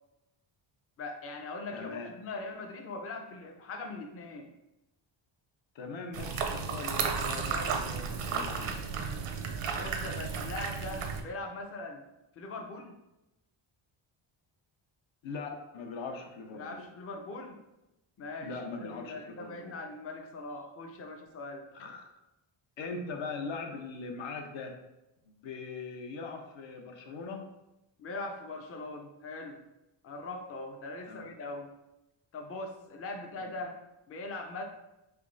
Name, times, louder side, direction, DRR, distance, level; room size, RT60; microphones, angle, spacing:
voice 1, 1.0-4.5 7.5-8.0 9.8-12.0 12.3-13.0 16.5-17.6 18.2-21.7 28.0-29.6 30.0-31.7 32.3-33.8 34.1-34.6, left 2 dB, 30° left, 4 dB, 0.4 m, -41 dB
voice 2, 1.7-2.1 5.7-8.8 15.2-16.8 18.4-19.7 21.7-22.1 22.8-24.8 25.3-27.5 31.0-31.3 33.4-33.6, left 4 dB, 65° left, 4 dB, 0.8 m, -41 dB
sound 1, 6.1-11.2, right 5 dB, 85° right, 0.7 m, -33 dB
3.4 x 3.1 x 3.8 m, 0.96 s
wide cardioid pair, 150°, 49 cm